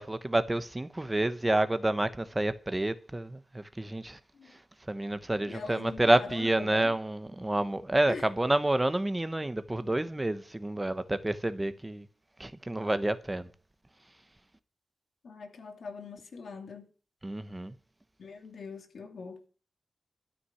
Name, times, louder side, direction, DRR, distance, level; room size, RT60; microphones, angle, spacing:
voice 1, 0.0-4.2 4.9-12.0 12.4-13.5 17.2-17.7, right 1 dB, 15° right, 1.0 m, -29 dB
voice 2, 5.5-7.0 8.1-8.3 15.2-16.9 18.2-19.4, left 4 dB, 75° left, 2.7 m, -42 dB
13.0 x 6.1 x 9.6 m
wide cardioid pair, 115°, 0 cm